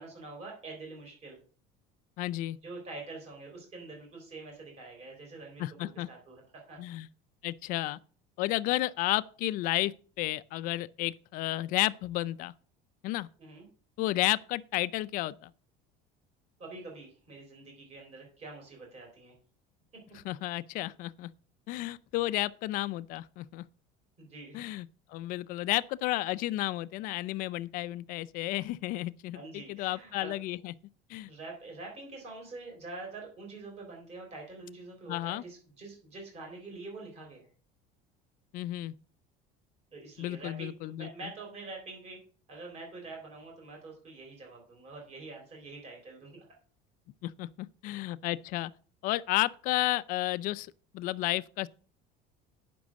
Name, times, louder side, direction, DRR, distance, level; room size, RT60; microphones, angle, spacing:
voice 1, 0.0-1.4 2.6-6.8 13.4-13.7 16.6-19.4 24.2-24.6 29.3-30.3 31.3-37.5 39.9-42.2 42.5-46.4, right 3 dB, 30° right, 3.7 m, -45 dB
voice 2, 2.2-2.6 5.6-6.1 6.8-7.1 7.4-8.0 8.4-12.5 13.0-13.3 14.0-15.5 20.2-21.3 21.7-23.6 24.5-30.7 31.1-31.3 35.1-35.4 38.5-38.9 40.2-41.3 47.2-48.7 49.0-51.7, left 17 dB, 45° left, 0.4 m, -32 dB
9.5 x 6.0 x 6.3 m
cardioid pair, 175°, 20 cm